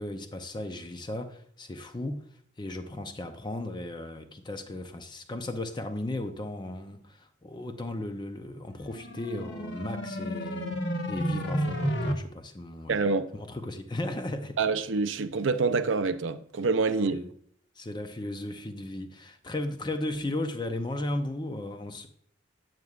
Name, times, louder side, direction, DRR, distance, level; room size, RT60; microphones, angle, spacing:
voice 1, 0.0-2.2 2.6-10.7 11.1-13.0 13.3-14.6 17.0-17.3 17.8-22.1, left 1 dB, 20° left, 0.6 m, -35 dB
sound 1, 8.8-12.1, equal, 60° left, 1.2 m, -31 dB
voice 2, 12.9-13.3 14.6-17.2, right 4 dB, 70° right, 0.5 m, -26 dB
9.0 x 8.0 x 2.4 m
head